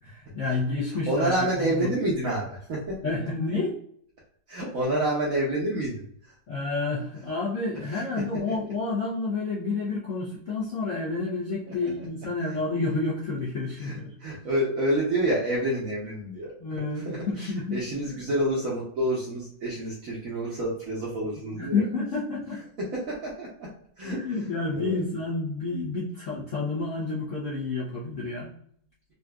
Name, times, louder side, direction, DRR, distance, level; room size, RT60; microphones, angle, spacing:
voice 1, 0.0-1.9 3.0-3.8 6.5-14.1 16.6-17.8 21.5-22.6 24.0-28.5, left 3 dB, 65° left, -6 dB, 0.7 m, -30 dB
voice 2, 1.1-3.0 4.5-6.3 7.9-8.0 12.0-12.1 12.5-12.6 13.8-21.8 22.9-23.7 24.0-24.3 24.7-25.0, right 1 dB, 65° right, -4 dB, 0.8 m, -28 dB
3.8 x 2.5 x 2.2 m, 0.64 s
omnidirectional pair, 2.2 m